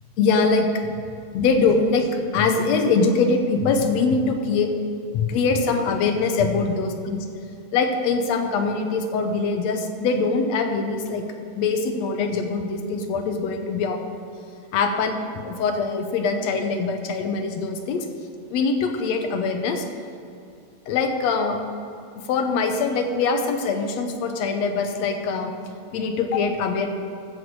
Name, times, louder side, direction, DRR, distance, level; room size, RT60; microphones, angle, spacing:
voice 1, 0.2-0.9 1.3-4.7 5.1-7.3 7.7-11.2 11.6-14.0 14.7-18.1 18.5-19.9 20.9-21.6 22.3-25.5 25.9-26.9, left 4 dB, 70° left, 5 dB, 2.0 m, -23 dB
14.0 x 7.8 x 4.7 m, 2.5 s
omnidirectional pair, 3.3 m